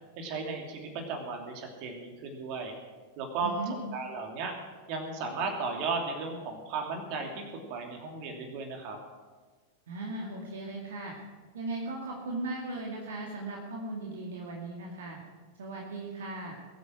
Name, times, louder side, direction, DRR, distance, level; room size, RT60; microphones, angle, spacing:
voice 1, 0.2-2.7 3.2-3.5 3.9-4.5 4.9-9.0, right 4 dB, 45° right, 2 dB, 2.8 m, -35 dB
voice 2, 3.4-3.7 9.9-11.1 11.5-15.2 15.6-16.6, right 2 dB, 60° right, -1 dB, 2.4 m, -37 dB
21.5 x 9.2 x 6.2 m, 1.3 s
figure-of-eight pair, 90°, 0 cm